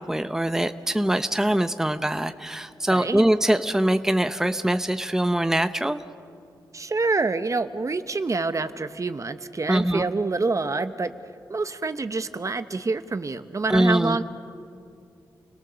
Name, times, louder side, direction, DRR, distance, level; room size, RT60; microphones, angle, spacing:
voice 1, 0.0-6.0 9.7-10.1 13.7-14.2, right 1 dB, 5° right, 10 dB, 0.8 m, -23 dB
voice 2, 2.9-3.2 6.7-11.1 11.5-14.2, right 3 dB, 40° right, 11 dB, 1.0 m, -27 dB
29.0 x 18.0 x 6.9 m, 2.5 s
cardioid pair, 65°, 8 cm